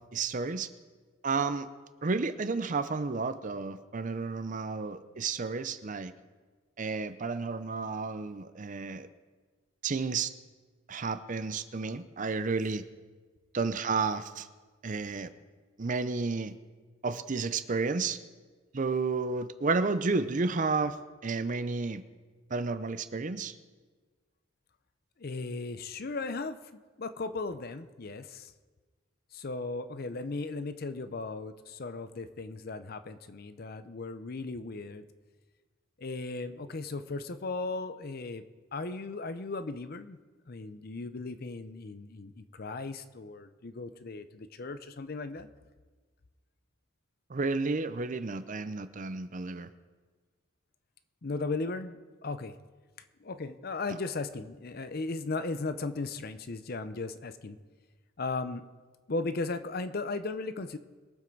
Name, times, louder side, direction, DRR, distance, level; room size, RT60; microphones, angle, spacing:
voice 1, 0.1-0.7 1.2-1.7 2.0-6.1 6.8-9.1 9.8-10.3 10.9-12.8 13.5-14.5 14.8-15.3 15.8-16.6 17.0-18.2 18.7-21.0 21.2-22.0 22.5-23.5 47.3-49.7, right 4 dB, 40° right, 12 dB, 0.6 m, -31 dB
voice 2, 25.2-26.6 27.0-28.5 29.3-35.0 36.0-38.4 38.7-40.2 40.5-45.5 51.2-52.6 53.2-57.6 58.2-58.6 59.1-60.8, left 3 dB, 50° left, 11 dB, 0.6 m, -36 dB
22.0 x 7.5 x 4.6 m, 1.4 s
head